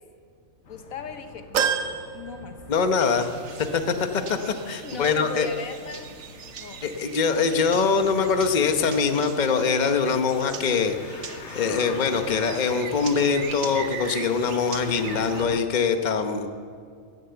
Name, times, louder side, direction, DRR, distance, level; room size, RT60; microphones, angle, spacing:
voice 1, 0.7-1.7 2.1-2.6 4.8-6.1 6.6-6.8, left 5 dB, 90° left, 7 dB, 1.6 m, -37 dB
sound 1, 0.7-15.6, left 6 dB, 60° left, 1.3 m, -43 dB
sound 2, 1.5-3.2 3.6-3.7 4.9-5.0, right 7 dB, 80° right, 1.3 m, -28 dB
voice 2, 2.7-3.3 3.6-5.5 6.8-10.9 11.5-16.5, left 5 dB, 35° left, 7 dB, 1.0 m, -23 dB
sound 3, 2.9-15.4, right 6 dB, 60° right, 1.2 m, -41 dB
16.0 x 11.0 x 8.0 m, 2.2 s
omnidirectional pair, 1.4 m